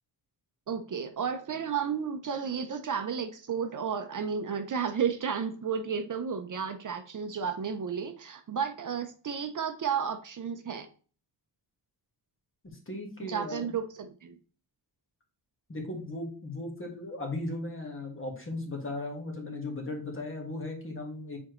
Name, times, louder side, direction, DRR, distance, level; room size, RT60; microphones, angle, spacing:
voice 1, 0.7-10.9 13.3-14.4, right 7 dB, 50° right, 7 dB, 0.6 m, -32 dB
voice 2, 12.6-13.7 15.7-21.4, left 2 dB, 30° left, 1 dB, 1.7 m, -37 dB
7.1 x 4.3 x 3.1 m, 0.40 s
wide cardioid pair, 165°, 42 cm